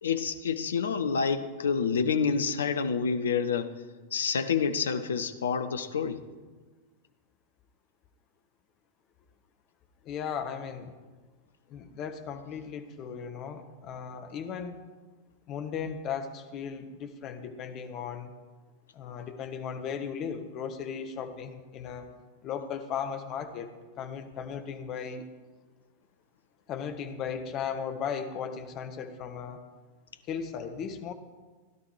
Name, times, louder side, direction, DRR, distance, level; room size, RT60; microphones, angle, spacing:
voice 1, 0.0-3.7 4.1-6.2, left 6 dB, 65° left, 10 dB, 0.8 m, -28 dB
voice 2, 10.0-10.9 11.7-14.8 15.5-18.3 18.9-22.1 22.4-23.7 24.0-25.2 26.7-29.6 30.3-31.1, left 7 dB, 35° left, 7 dB, 1.3 m, -36 dB
16.5 x 11.5 x 4.8 m, 1.3 s
figure-of-eight pair, 90°, 0 cm